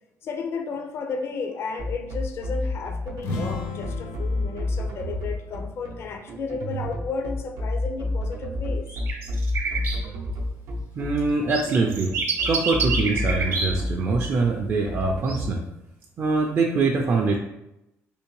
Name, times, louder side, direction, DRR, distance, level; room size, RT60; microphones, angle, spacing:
voice 1, 0.2-8.9, left 4 dB, 50° left, 4 dB, 0.4 m, -33 dB
sound 1, 1.8-15.5, left 1 dB, 85° right, 0.6 m, -30 dB
sound 2, 3.1-6.9, left 4 dB, 80° left, 0.7 m, -36 dB
sound 3, 8.9-10.0 11.5-13.9 15.2-15.4, right 5 dB, 55° right, 0.8 m, -27 dB
voice 2, 11.0-12.1 12.4-15.6 16.2-17.4, right 3 dB, 40° right, 0 dB, 0.4 m, -23 dB
3.4 x 2.8 x 3.1 m, 0.89 s
cardioid pair, 140°, 5 cm